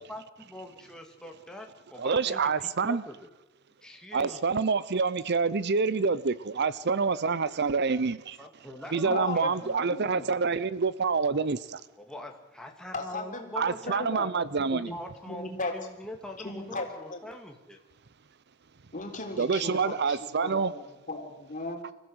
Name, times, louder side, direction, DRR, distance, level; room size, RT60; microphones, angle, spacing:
voice 1, 0.1-3.3 3.8-4.4 8.4-9.7 12.0-14.3 14.9-17.8, left 1 dB, 5° left, 2.2 m, -43 dB
voice 2, 2.0-3.0 4.1-8.4 8.9-11.8 13.6-14.9 19.4-20.7, right 5 dB, 55° right, 0.7 m, -27 dB
voice 3, 9.0-10.3 12.9-15.0 15.3-15.7 16.4-17.2 18.9-21.9, left 2 dB, 40° left, 3.6 m, -37 dB
25.5 x 15.0 x 8.0 m
head